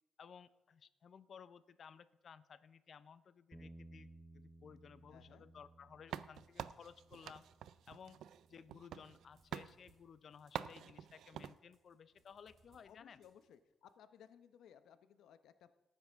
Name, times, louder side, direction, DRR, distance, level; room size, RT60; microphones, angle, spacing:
voice 1, 0.2-4.1 4.3-7.4 7.9-8.2 8.5-13.2, left 7 dB, 45° left, 15 dB, 0.5 m, -57 dB
Bass guitar, 3.5-9.8, right 2 dB, 15° right, 0.7 m, -61 dB
voice 2, 5.1-5.5 12.9-15.8, left 9 dB, 85° left, 11 dB, 0.8 m, -61 dB
sound 1, 6.1-9.2 9.5-9.7 10.5-11.6, right 10 dB, 85° right, 0.4 m, -47 dB
sound 2, 6.3-7.6 7.9-13.9, right 4 dB, 60° right, 3.6 m, -76 dB
18.0 x 9.3 x 3.5 m, 1.1 s
cardioid pair, 150°, 0 cm